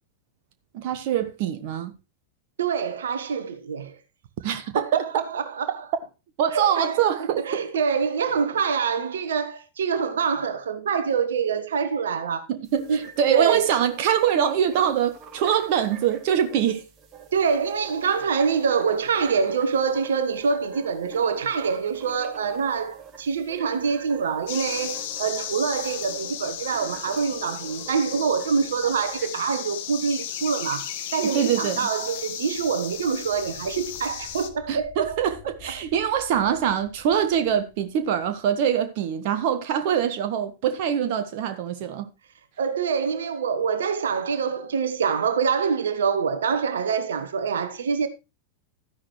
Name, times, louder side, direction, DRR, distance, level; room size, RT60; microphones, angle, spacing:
voice 1, 0.7-1.9 4.4-5.0 6.4-7.6 12.5-16.8 31.2-31.9 34.7-42.1, right 9 dB, 45° right, 1.3 m, -24 dB
voice 2, 2.6-4.0 4.7-5.8 6.5-7.0 7.4-12.5 12.9-13.0 13.3-13.7 17.3-35.2 42.6-48.1, right 6 dB, 65° right, 1.3 m, -25 dB
sound 1, 12.6-29.3, right 7 dB, 25° right, 2.7 m, -45 dB
sound 2, 24.5-34.5, left 10 dB, 55° left, 1.8 m, -35 dB
sound 3, 31.8-38.6, left 4 dB, 20° left, 5.3 m, -51 dB
13.5 x 10.0 x 3.2 m
figure-of-eight pair, 90°, 0 cm